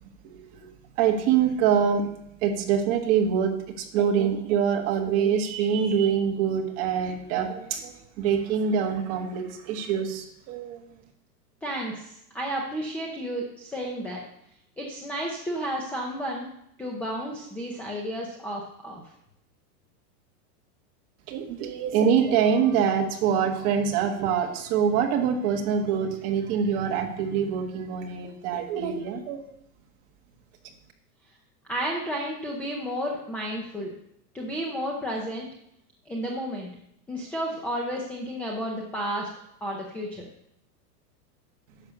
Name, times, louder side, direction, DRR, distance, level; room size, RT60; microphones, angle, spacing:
voice 1, 0.2-0.7 1.0-2.0 2.4-10.8 21.3-29.5, right 7 dB, 35° right, 3 dB, 1.6 m, -25 dB
voice 2, 11.6-14.2 14.8-16.5 16.8-19.0 31.7-33.9 34.3-35.5 36.1-36.7 37.1-39.3 39.6-40.3, equal, 5° left, -2 dB, 0.5 m, -32 dB
10.5 x 6.7 x 6.8 m, 0.75 s
supercardioid pair, 165°, 47 cm